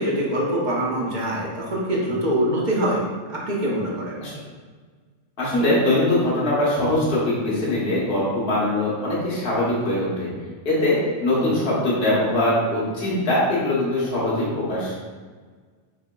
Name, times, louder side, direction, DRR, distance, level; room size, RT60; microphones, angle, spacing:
voice 1, 0.0-3.0 3.3-4.2 11.3-11.6, right 1 dB, 45° right, -4 dB, 0.9 m, -24 dB
voice 2, 5.4-10.3 10.6-11.0 11.2-14.9, left 1 dB, 60° left, -7 dB, 1.3 m, -22 dB
5.9 x 2.8 x 2.2 m, 1.5 s
omnidirectional pair, 1.2 m